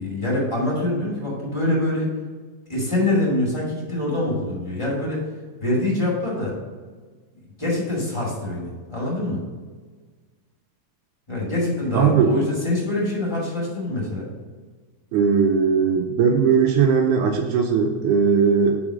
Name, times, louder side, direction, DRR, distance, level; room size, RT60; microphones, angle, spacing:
voice 1, 0.0-2.1 2.7-5.2 5.6-6.6 7.6-9.4 11.3-14.3, left 1 dB, 10° left, -5 dB, 1.6 m, -24 dB
voice 2, 11.9-12.4 15.1-18.8, right 6 dB, 80° right, 3 dB, 1.9 m, -19 dB
6.1 x 3.9 x 6.2 m, 1.4 s
omnidirectional pair, 3.8 m